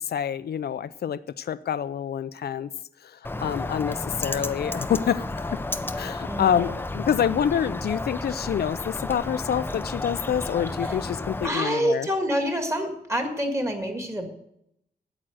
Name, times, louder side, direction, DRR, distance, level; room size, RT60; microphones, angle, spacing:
voice 1, 0.0-2.7 3.0-5.6 6.0-12.1, left 9 dB, 75° left, 14 dB, 0.4 m, -27 dB
Bird, 3.2-11.5, left 2 dB, 15° left, 0.5 m, -32 dB
voice 2, 6.3-6.7 11.4-14.3, equal, 15° right, 4 dB, 1.9 m, -27 dB
8.8 x 8.7 x 7.7 m, 0.76 s
wide cardioid pair, 165°, 16 cm